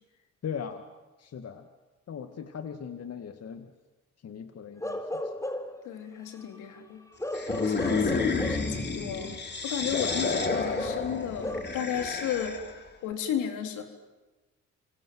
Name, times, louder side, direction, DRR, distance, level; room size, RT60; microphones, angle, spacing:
voice 1, 0.4-0.8 1.2-1.6 2.1-3.7 4.2-5.0 9.9-10.2, left 7 dB, 55° left, 8 dB, 2.0 m, -39 dB
Bark / Livestock farm animals working animals, 4.8-5.8 7.2-8.7 10.5-11.6, left 1 dB, 10° left, 3.7 m, -34 dB
voice 2, 5.9-7.0 7.6-9.3 9.6-12.6 13.0-13.8, left 9 dB, 85° left, 5 dB, 3.9 m, -33 dB
sound 1, 7.3-12.8, left 4 dB, 35° left, 3.6 m, -30 dB
30.0 x 25.0 x 7.8 m, 1.2 s
supercardioid pair, 70°, 30 cm